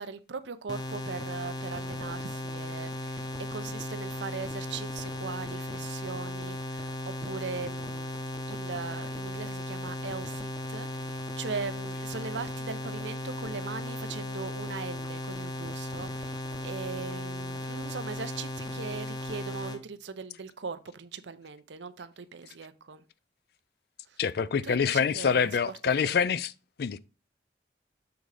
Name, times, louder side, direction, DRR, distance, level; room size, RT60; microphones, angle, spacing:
voice 1, 0.0-8.2 8.5-23.0 24.1-24.2 24.6-26.1, right 5 dB, 80° right, 0.6 m, -40 dB
sound 1, 0.7-19.8, left 1 dB, 20° left, 0.8 m, -36 dB
voice 2, 24.2-26.5 26.8-27.0, left 6 dB, 60° left, 0.4 m, -26 dB
7.0 x 3.8 x 4.8 m
head